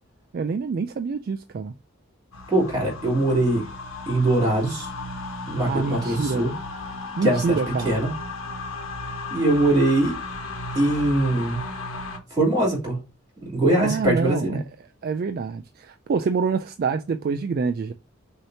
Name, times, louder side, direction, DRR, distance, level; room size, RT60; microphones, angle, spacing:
voice 1, 0.3-1.7 5.6-6.4 7.2-8.0 13.7-14.6 15.0-17.9, right 5 dB, 45° right, 0.3 m, -26 dB
sound 1, 2.3-12.2, left 3 dB, 80° left, 1.1 m, -35 dB
voice 2, 2.5-3.7 4.1-4.9 5.5-6.5 7.2-8.1 9.3-10.1 10.7-11.6 12.3-13.0 13.4-14.6, right 1 dB, 20° right, 3.0 m, -22 dB
6.4 x 2.9 x 2.8 m
head